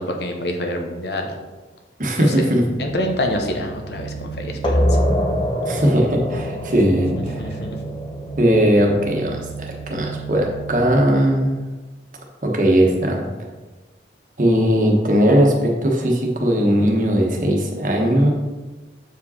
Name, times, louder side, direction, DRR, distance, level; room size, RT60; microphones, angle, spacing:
voice 1, 0.0-1.3 2.2-2.5 2.8-5.0 7.4-7.8, left 1 dB, 70° left, 3 dB, 1.0 m, -26 dB
voice 2, 2.0-2.6 5.6-7.6 8.4-11.5 12.4-13.2 14.4-18.3, equal, 45° right, 0 dB, 1.2 m, -18 dB
sound 1, 2.7-11.1, right 6 dB, 55° left, 1.4 m, -36 dB
sound 2, 4.6-10.0, equal, 25° left, 0.8 m, -24 dB
7.4 x 4.9 x 4.2 m, 1.2 s
head